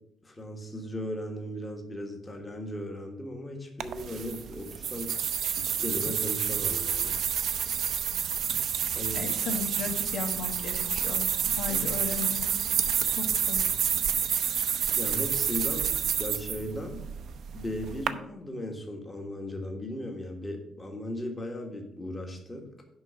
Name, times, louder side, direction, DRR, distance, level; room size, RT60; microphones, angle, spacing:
voice 1, 0.2-5.1 5.6-7.1 8.9-9.2 11.7-11.8 14.9-17.0 17.5-22.7, left 1 dB, 15° left, 2 dB, 1.4 m, -37 dB
sound 1, 3.8-18.1, right 8 dB, 55° right, 0.6 m, -29 dB
voice 2, 9.1-11.3 11.6-12.5 13.1-13.7, left 5 dB, 85° left, 4 dB, 1.5 m, -35 dB
11.0 x 3.9 x 6.6 m, 0.77 s
cardioid pair, 160°, 0 cm